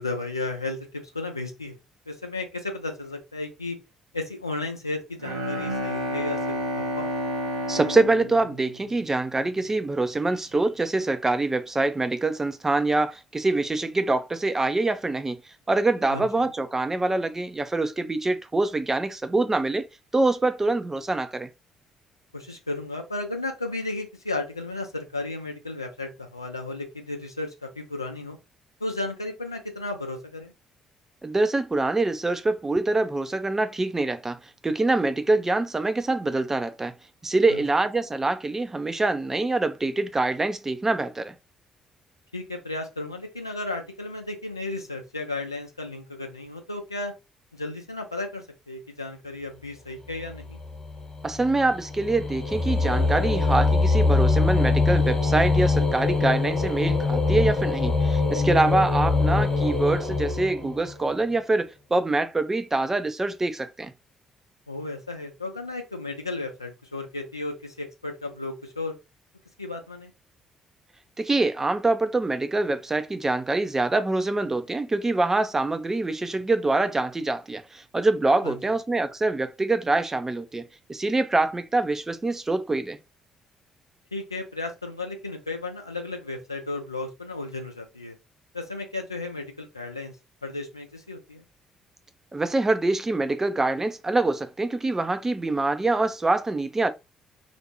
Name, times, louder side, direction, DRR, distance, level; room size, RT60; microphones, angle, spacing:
voice 1, 0.0-1.8 2.1-3.8 4.1-7.1 16.1-16.5 22.3-28.4 28.8-30.5 37.5-37.6 42.3-47.1 47.5-50.6 58.4-58.8 64.7-69.0 69.6-70.1 78.4-78.6 84.1-88.2 88.5-90.1 90.4-91.4, left 2 dB, 85° left, 0.4 m, -34 dB
Bowed string instrument, 5.2-9.5, equal, 80° right, 0.6 m, -30 dB
voice 2, 7.7-15.4 15.7-19.9 20.1-21.5 31.2-36.9 37.2-41.4 51.2-63.9 71.2-83.0 92.3-96.9, right 2 dB, 20° right, 0.4 m, -25 dB
sound 1, 50.2-61.1, left 3 dB, 35° left, 0.9 m, -23 dB
2.4 x 2.2 x 2.9 m
figure-of-eight pair, 45°, 2 cm